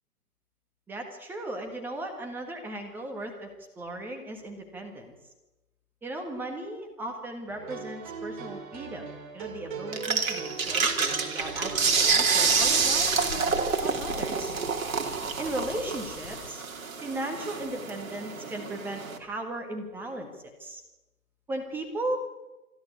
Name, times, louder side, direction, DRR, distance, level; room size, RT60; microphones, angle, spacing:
voice 1, 0.9-5.1 6.0-14.5 15.4-16.6 17.0-20.8 21.5-22.2, right 1 dB, 5° right, 3 dB, 1.6 m, -36 dB
sound 1, 7.5-13.6, right 5 dB, 30° right, 2.9 m, -40 dB
sound 2, 9.9-19.2, right 5 dB, 60° right, 2.9 m, -28 dB
sound 3, 11.4-16.5, left 5 dB, 45° left, 5.1 m, -44 dB
27.0 x 12.0 x 8.5 m, 1.0 s
figure-of-eight pair, 150°, 47 cm